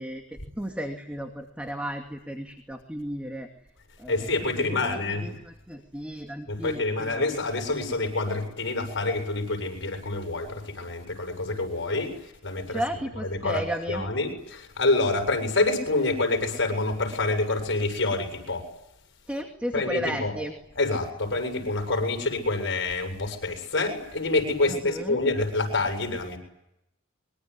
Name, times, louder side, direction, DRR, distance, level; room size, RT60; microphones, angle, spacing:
voice 1, 0.0-3.5 4.0-7.3 12.7-14.0 19.3-20.5 24.7-25.2, equal, 5° right, 3 dB, 2.5 m, -34 dB
voice 2, 4.1-5.3 6.5-12.1 12.4-12.8 13.2-13.6 13.9-18.6 19.7-20.3 20.8-26.4, left 2 dB, 60° left, 4 dB, 7.6 m, -27 dB
25.5 x 23.5 x 10.0 m, 0.84 s
head